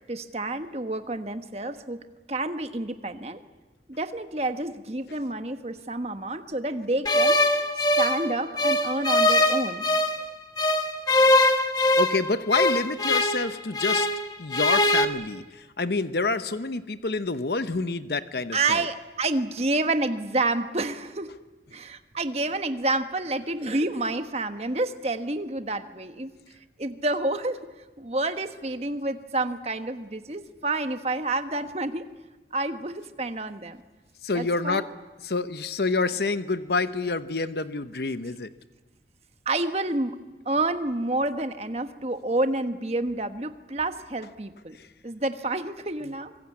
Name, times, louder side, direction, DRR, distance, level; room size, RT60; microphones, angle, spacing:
voice 1, 0.1-2.0 2.3-3.4 3.9-7.4 8.0-9.8 18.5-21.3 21.7-26.3 26.8-27.6 28.0-32.0 32.5-33.8 34.3-34.8 39.4-40.2 40.4-44.8 45.0-46.3, right 2 dB, 35° right, 8 dB, 1.3 m, -29 dB
sound 1, 7.1-10.2 10.6-14.2 14.5-15.1, left 1 dB, 20° left, 1.3 m, -22 dB
voice 2, 12.0-14.1 14.4-18.9 34.2-34.9 35.2-38.5 44.7-44.9, left 3 dB, 65° left, 12 dB, 0.9 m, -28 dB
25.0 x 22.0 x 8.6 m, 1.2 s
head